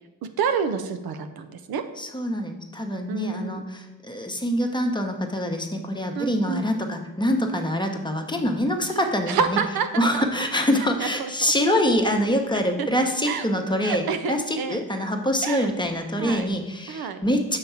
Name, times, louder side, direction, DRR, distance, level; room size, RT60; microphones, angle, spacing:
voice 1, 0.2-1.9 3.1-3.6 6.2-6.6 9.3-10.3 11.0-11.5 12.8-12.9 13.2-13.5 13.8-14.8 15.4-15.7 16.2-16.5 16.9-17.2, right 6 dB, 75° right, 8 dB, 0.6 m, -28 dB
voice 2, 2.0-9.6 10.0-17.6, equal, 10° left, 3 dB, 0.9 m, -25 dB
6.6 x 3.5 x 5.7 m, 1.1 s
cardioid pair, 60°, 37 cm